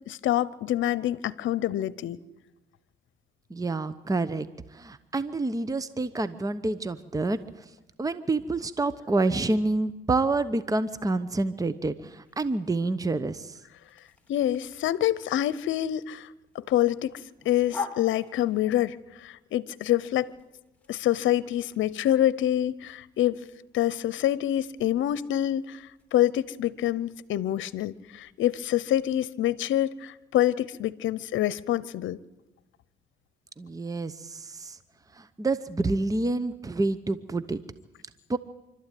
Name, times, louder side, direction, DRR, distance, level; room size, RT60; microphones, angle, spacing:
voice 1, 0.1-2.2 14.3-16.3 16.5-17.1 17.4-20.3 20.9-23.4 23.7-25.8 26.1-32.2, left 12 dB, 75° left, 19 dB, 0.8 m, -26 dB
voice 2, 3.5-4.5 4.7-7.7 8.0-13.6 33.6-34.8 35.1-37.6 38.3-38.4, right 2 dB, 15° right, 14 dB, 0.9 m, -28 dB
sound 1, 12.2-29.1, left 5 dB, 5° left, 3.1 m, -47 dB
25.5 x 13.0 x 9.2 m, 1.0 s
cardioid pair, 90°, 20 cm